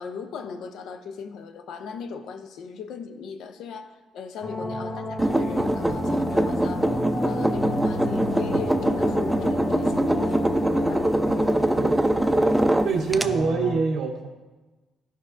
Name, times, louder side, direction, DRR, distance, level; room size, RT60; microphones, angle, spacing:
voice 1, 0.0-6.9 7.2-11.1, left 6 dB, 80° left, 0.5 m, -38 dB
sound 1, 4.4-13.7, left 2 dB, 55° left, 1.0 m, -33 dB
sound 2, 5.2-13.3, right 1 dB, 10° right, 0.4 m, -23 dB
voice 2, 11.2-12.5 12.8-14.3, right 5 dB, 80° right, 0.6 m, -27 dB
13.0 x 5.2 x 2.5 m
cardioid pair, 90°, 0 cm